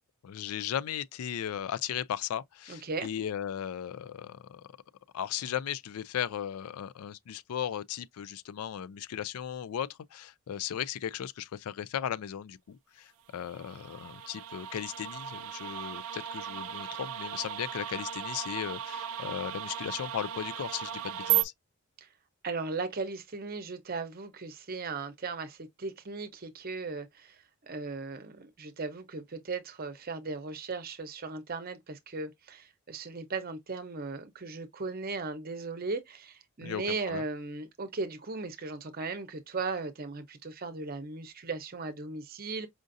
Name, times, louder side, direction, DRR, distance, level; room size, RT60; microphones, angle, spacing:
voice 1, 0.2-4.6 5.1-21.5 36.6-37.2, left 9 dB, 85° left, 0.3 m, -36 dB
voice 2, 2.7-3.1 22.0-22.1 22.4-42.7, right 3 dB, 45° right, 0.7 m, -37 dB
sound 1, 13.4-21.4, right 11 dB, 70° right, 0.3 m, -35 dB
5.0 x 2.5 x 2.5 m
head